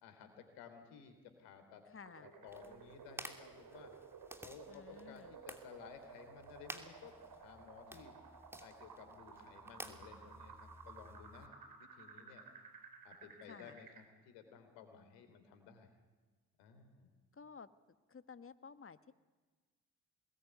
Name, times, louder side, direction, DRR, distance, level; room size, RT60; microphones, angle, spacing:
voice 1, 0.0-1.8 2.2-3.9 4.4-8.1 8.6-11.5 11.8-12.4 13.0-15.9 16.6-17.1, left 7 dB, 80° left, 7 dB, 3.7 m, -56 dB
voice 2, 1.9-2.3 4.7-5.4 13.4-13.8 17.3-17.7 18.1-19.1, left 5 dB, 30° left, 12 dB, 1.5 m, -54 dB
sound 1, 2.1-14.1, right 5 dB, 55° right, 4.4 m, -56 dB
sound 2, 2.5-11.5, equal, 5° right, 2.8 m, -54 dB
24.5 x 20.0 x 9.5 m, 1.4 s
hypercardioid pair, 45°, 42 cm